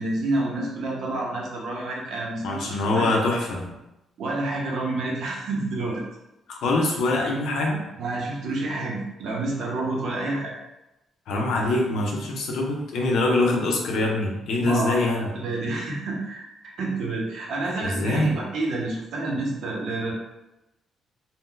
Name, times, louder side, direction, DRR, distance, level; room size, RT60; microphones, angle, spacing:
voice 1, 0.0-3.1 4.2-6.0 8.0-10.5 14.6-20.1, right 2 dB, 75° right, -3 dB, 0.8 m, -29 dB
voice 2, 2.4-3.7 6.5-7.8 11.3-15.3 17.8-18.3, left 2 dB, 80° left, 0 dB, 0.6 m, -24 dB
2.7 x 2.1 x 3.7 m, 0.94 s
cardioid pair, 90°, 0 cm